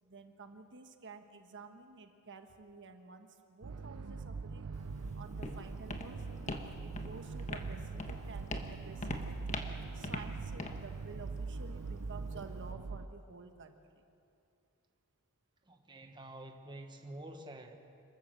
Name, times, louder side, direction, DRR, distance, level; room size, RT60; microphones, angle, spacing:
voice 1, 0.0-4.7 5.1-6.5 6.8-9.4 9.9-14.0, right 4 dB, 60° right, 6 dB, 1.3 m, -51 dB
atmospheric noise, 3.6-13.1, right 4 dB, 85° right, 0.6 m, -42 dB
Walk footsteps, 4.7-12.7, left 2 dB, 35° left, 1.3 m, -44 dB
voice 2, 15.7-17.8, right 1 dB, 20° right, 4 dB, 1.2 m, -48 dB
26.5 x 13.0 x 7.6 m, 2.6 s
head